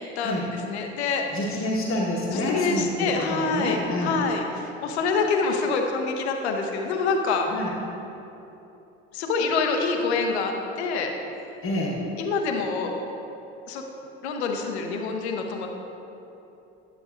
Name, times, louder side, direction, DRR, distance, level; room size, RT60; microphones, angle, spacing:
voice 1, 0.0-1.6 2.3-7.5 9.1-11.1 12.2-12.9 13.7-13.8 14.2-15.7, left 4 dB, 90° left, 3 dB, 0.8 m, -26 dB
voice 2, 1.3-4.2 7.5-7.7 11.6-12.0, left 1 dB, 40° left, -4 dB, 1.2 m, -28 dB
11.0 x 6.9 x 2.5 m, 2.9 s
hypercardioid pair, 65°, 32 cm